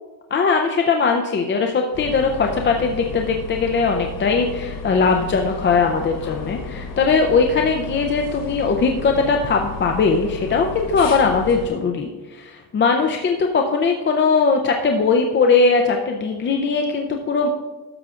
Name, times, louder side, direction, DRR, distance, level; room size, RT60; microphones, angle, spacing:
voice 1, 0.3-17.5, left 4 dB, 30° left, 3 dB, 0.5 m, -20 dB
sound 1, 1.9-11.7, left 4 dB, 55° left, 1.2 m, -33 dB
12.5 x 7.0 x 2.4 m, 1.2 s
cardioid pair, 150°, 39 cm